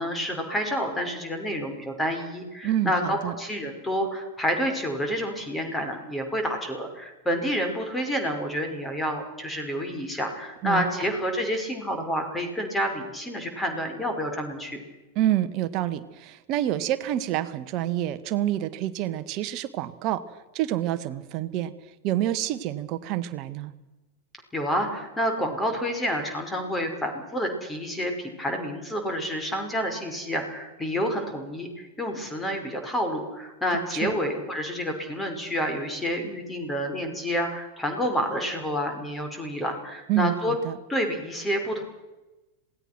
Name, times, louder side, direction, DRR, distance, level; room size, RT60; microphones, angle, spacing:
voice 1, 0.0-14.8 24.5-40.5 40.9-41.8, equal, 10° left, 5 dB, 5.7 m, -29 dB
voice 2, 2.6-3.3 10.6-10.8 15.1-20.2 20.5-21.7 22.0-23.7 33.9-34.1 40.1-40.8, right 13 dB, 40° right, 11 dB, 1.7 m, -27 dB
27.0 x 18.5 x 6.2 m, 1.1 s
figure-of-eight pair, 90°, 0 cm